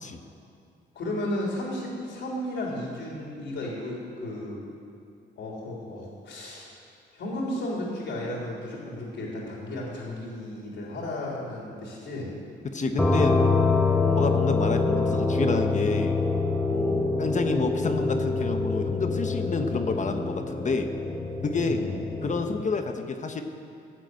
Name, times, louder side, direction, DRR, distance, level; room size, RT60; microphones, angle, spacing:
voice 1, 1.0-4.6 5.4-6.7 7.1-12.3 14.0-14.3 16.7-17.0 21.6-22.0, left 1 dB, 70° left, -3 dB, 3.5 m, -34 dB
voice 2, 12.6-13.4 14.1-16.2 17.2-20.9 21.4-21.8 22.2-23.4, left 4 dB, 40° left, 6 dB, 1.2 m, -29 dB
sound 1, 13.0-22.5, left 3 dB, 5° left, 1.5 m, -25 dB
15.0 x 8.2 x 7.8 m, 2.5 s
cardioid pair, 90°, 20 cm